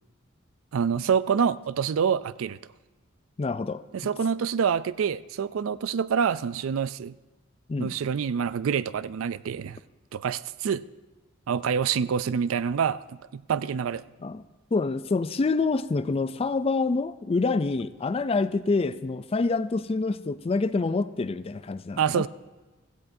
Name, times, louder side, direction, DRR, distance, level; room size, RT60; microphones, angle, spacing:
voice 1, 0.7-2.6 3.9-7.1 7.8-9.8 10.1-10.8 11.5-13.0 13.3-14.0 22.0-22.3, right 7 dB, 75° right, 17 dB, 0.4 m, -26 dB
voice 2, 3.4-3.8 7.7-7.9 14.2-14.4 14.7-22.2, left 3 dB, 30° left, 14 dB, 0.4 m, -26 dB
16.0 x 15.5 x 2.7 m, 1.2 s
head